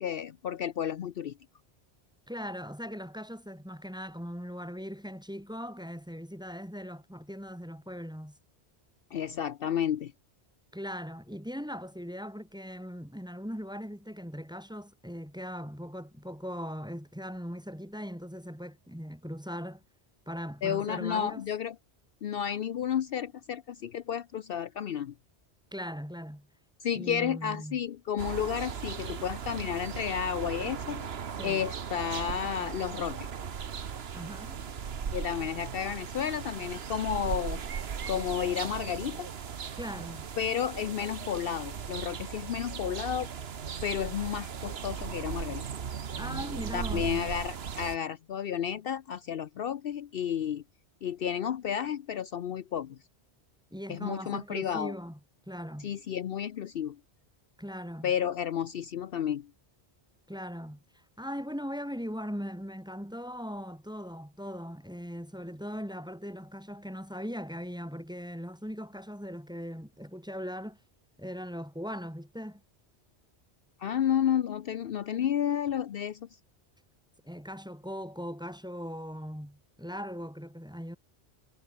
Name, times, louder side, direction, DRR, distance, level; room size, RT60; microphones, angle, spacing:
voice 1, 0.0-1.3 9.1-10.1 20.6-21.7 22.2-25.1 26.8-31.1 31.4-33.3 35.1-37.6 38.1-39.3 40.4-43.3 43.8-45.6 46.7-50.6 51.0-53.0 53.9-54.9 55.8-57.0 58.0-59.5 73.8-76.3, left 9 dB, 60° left, 0.8 m, -32 dB
voice 2, 2.3-8.4 10.7-19.8 20.3-21.4 25.7-26.5 26.9-27.8 31.4-31.6 34.1-34.6 39.8-40.3 46.2-47.1 53.7-55.2 55.5-55.9 57.6-58.1 60.3-60.8 61.2-70.8 71.2-72.6 77.2-81.0, equal, 5° right, 2.0 m, -39 dB
sound 1, 28.2-48.0, right 7 dB, 70° right, 1.3 m, -37 dB
omnidirectional pair, 1.1 m